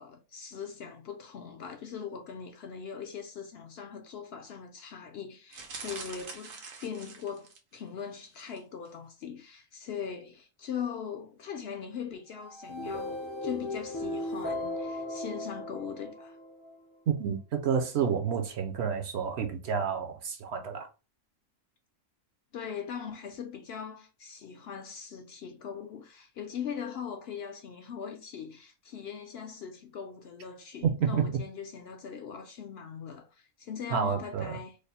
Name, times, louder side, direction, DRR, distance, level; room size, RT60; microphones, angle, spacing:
voice 1, 0.0-16.4 22.5-34.8, left 7 dB, 65° left, 0.7 m, -40 dB
sound 1, 5.5-7.8 8.3-8.6 8.9-9.0, right 4 dB, 85° right, 1.3 m, -44 dB
sound 2, 12.5-16.8, left 2 dB, 25° left, 0.4 m, -36 dB
voice 2, 17.1-20.9 30.8-31.2 33.9-34.5, right 7 dB, 65° right, 0.8 m, -29 dB
3.2 x 2.0 x 4.1 m
omnidirectional pair, 1.3 m